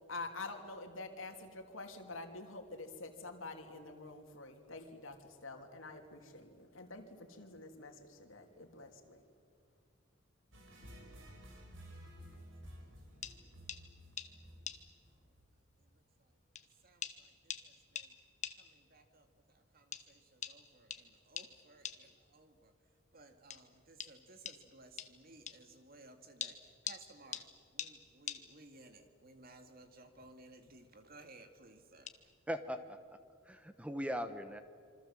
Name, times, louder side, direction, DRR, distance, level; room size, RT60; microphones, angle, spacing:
voice 1, 0.1-9.2, left 3 dB, 80° left, 4 dB, 3.0 m, -47 dB
sound 1, 10.5-15.5, equal, 75° right, 5.3 m, -54 dB
voice 2, 11.6-12.4 12.8-12.9 13.4-13.5 13.8-14.5 15.1-15.3 15.8-16.4 16.8-18.2 18.5-22.7 23.1-32.3, right 2 dB, 50° right, 7 dB, 2.2 m, -60 dB
sound 2, 13.2-13.4 13.7-13.8 14.2-14.3 14.7-14.8 15.8-15.9 16.6-16.7 17.0-17.2 17.5-17.7 18.0-18.1 18.4-18.6 19.9-20.0 20.4-20.6 20.9-21.0 21.4-21.5 21.8-22.0 23.5-23.6 24.0-24.1 24.5-24.6 25.0-25.1 25.5-25.6 26.4-27.0 27.3-27.5 27.8-27.9 28.3-28.4 30.1-30.3 30.6-30.9 32.1-32.2, left 8 dB, 35° left, 1.3 m, -42 dB
voice 3, 32.5-33.2 33.4-34.6, equal, 5° right, 9 dB, 1.0 m, -40 dB
27.0 x 25.0 x 7.6 m, 2.2 s
head